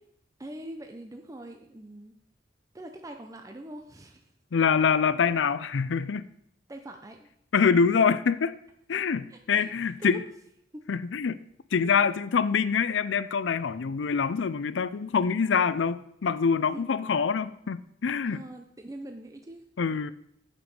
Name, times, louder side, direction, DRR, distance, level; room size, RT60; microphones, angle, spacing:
voice 1, 0.4-2.1 2.7-4.3 6.7-7.3 9.3-10.2 10.7-10.8 11.3-11.4 16.7-16.8 18.2-19.6, right 1 dB, 20° right, 0.6 m, -43 dB
voice 2, 4.5-6.2 7.5-8.5 8.9-10.2 10.9-11.4 11.7-18.4 19.8-20.1, left 6 dB, 90° left, 0.5 m, -25 dB
8.9 x 6.8 x 5.3 m
head